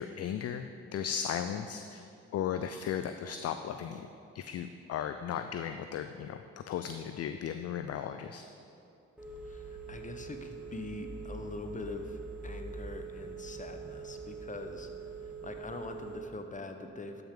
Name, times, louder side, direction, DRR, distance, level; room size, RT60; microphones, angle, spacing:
voice 1, 0.0-2.0 2.3-4.1 4.3-8.4, left 8 dB, 45° left, 8 dB, 0.4 m, -36 dB
Telephone, 9.2-16.2, right 4 dB, 5° right, 2.2 m, -44 dB
voice 2, 9.4-14.9 15.2-17.2, left 3 dB, 20° left, 6 dB, 1.0 m, -43 dB
12.5 x 5.7 x 3.8 m, 2.7 s
hypercardioid pair, 45°, 35 cm